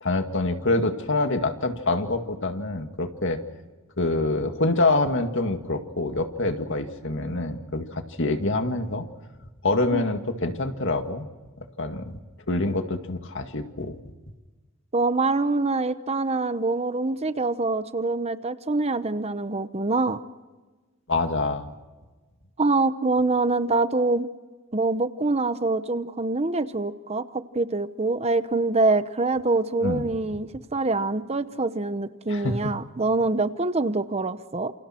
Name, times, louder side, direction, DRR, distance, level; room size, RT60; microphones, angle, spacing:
voice 1, 0.0-3.4 4.0-9.1 9.6-11.3 11.8-12.2 12.5-14.0 21.1-21.7 29.8-30.1 32.3-32.5, left 2 dB, 60° left, 6 dB, 2.1 m, -26 dB
voice 2, 14.9-20.2 22.6-24.3 24.7-34.7, right 3 dB, 30° right, 12 dB, 0.9 m, -25 dB
28.5 x 28.5 x 4.5 m, 1.3 s
head